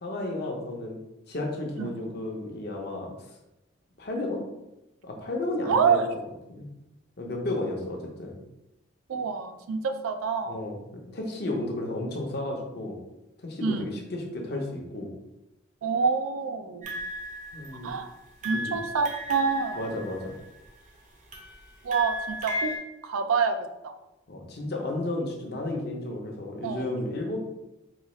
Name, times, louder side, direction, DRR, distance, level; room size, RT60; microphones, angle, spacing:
voice 1, 0.0-1.0 1.3-3.3 4.0-4.4 5.0-6.0 6.5-6.6 7.2-8.4 10.4-13.0 13.4-15.1 17.5-17.9 18.5-18.8 19.7-20.4 24.3-27.4, left 2 dB, 50° left, 0 dB, 0.7 m, -33 dB
voice 2, 5.7-6.1 9.1-10.6 13.6-13.9 15.8-16.9 17.8-18.1 18.4-19.8 21.8-22.7 23.0-23.9 26.6-26.9, right 5 dB, 90° right, 7 dB, 0.4 m, -27 dB
sound 1, 16.8-18.0 18.4-20.7 21.3-22.8, equal, 40° right, 0.6 m, -35 dB
3.9 x 2.3 x 3.1 m, 0.93 s
head